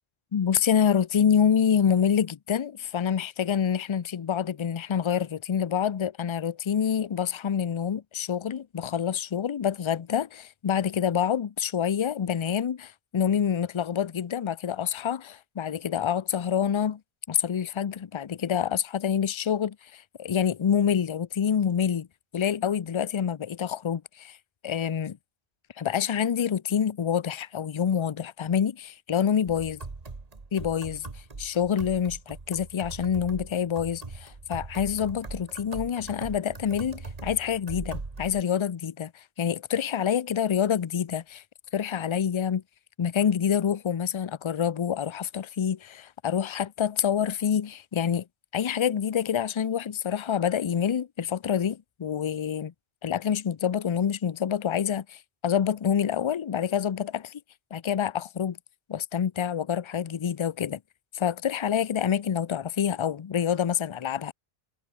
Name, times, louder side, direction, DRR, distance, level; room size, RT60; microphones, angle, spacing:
voice 1, 0.3-17.0 17.3-22.1 22.3-24.4 24.6-25.2 25.8-29.8 30.5-31.1 31.4-41.4 41.7-42.6 43.0-48.2 48.5-52.7 53.0-57.4 57.7-58.6 58.9-60.8 61.1-64.3, left 8 dB, 40° left, 0.4 m, -27 dB
sound 1, 29.5-38.4, right 3 dB, 40° right, 1.7 m, -41 dB
omnidirectional pair, 1.1 m